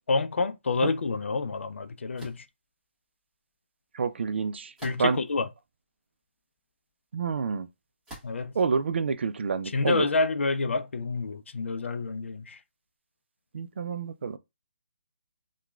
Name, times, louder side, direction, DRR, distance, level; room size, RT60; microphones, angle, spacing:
voice 1, 0.1-2.5 4.8-5.5 8.2-8.5 9.6-12.6, left 3 dB, 80° left, 0.4 m, -28 dB
sound 1, 2.2-2.5 4.8-5.3 6.0-6.1 8.0-8.5, equal, 5° right, 1.2 m, -45 dB
voice 2, 4.0-4.7 5.0-5.2 7.1-7.7 8.6-10.1 13.5-14.4, right 5 dB, 65° right, 0.4 m, -28 dB
2.9 x 2.3 x 2.3 m
hypercardioid pair, 160°, 6 cm